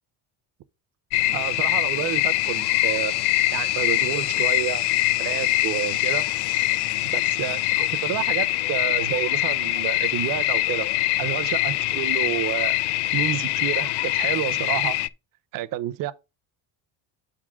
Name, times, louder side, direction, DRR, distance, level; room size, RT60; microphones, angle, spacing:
sound 1, 1.1-15.1, left 16 dB, 60° left, 0.5 m, -24 dB
voice 1, 1.3-3.1 3.5-4.9 5.2-6.2 7.1-10.9 11.2-12.8 13.1-15.0 15.5-16.1, right 13 dB, 50° right, 0.6 m, -29 dB
8.2 x 3.7 x 6.1 m
cardioid pair, 175°, 45 cm